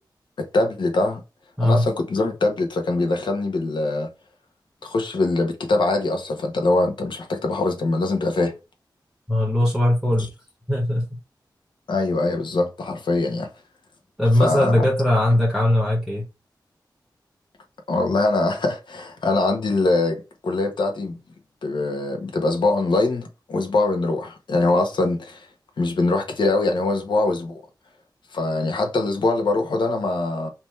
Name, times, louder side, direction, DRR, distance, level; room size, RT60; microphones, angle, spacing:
voice 1, 0.4-1.2 1.6-4.1 4.8-8.5 11.9-13.5 14.4-14.9 17.9-21.2 21.6-25.5 25.8-27.6 28.3-30.5, left 2 dB, 85° left, 1.1 m, -23 dB
voice 2, 9.3-10.3 10.7-11.0 14.2-16.2, left 1 dB, ahead, 1.0 m, -19 dB
3.5 x 3.0 x 4.3 m
wide cardioid pair, 115°, 8 cm